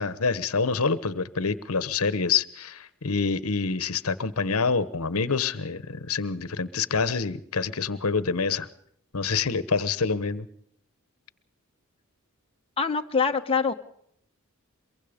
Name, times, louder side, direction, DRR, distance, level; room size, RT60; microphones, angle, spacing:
voice 1, 0.0-8.7 9.1-10.5, left 4 dB, 90° left, 15 dB, 1.1 m, -26 dB
voice 2, 12.8-13.7, left 5 dB, 25° left, 4 dB, 1.1 m, -24 dB
23.5 x 23.5 x 5.2 m, 0.70 s
head